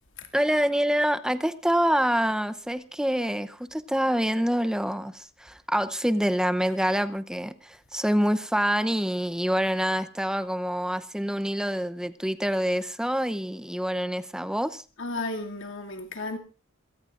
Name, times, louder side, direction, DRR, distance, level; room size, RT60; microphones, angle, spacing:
voice 1, 0.3-14.8, equal, 5° right, 0.7 m, -26 dB
voice 2, 15.0-16.4, left 2 dB, 65° left, 2.4 m, -33 dB
27.0 x 17.5 x 2.5 m
head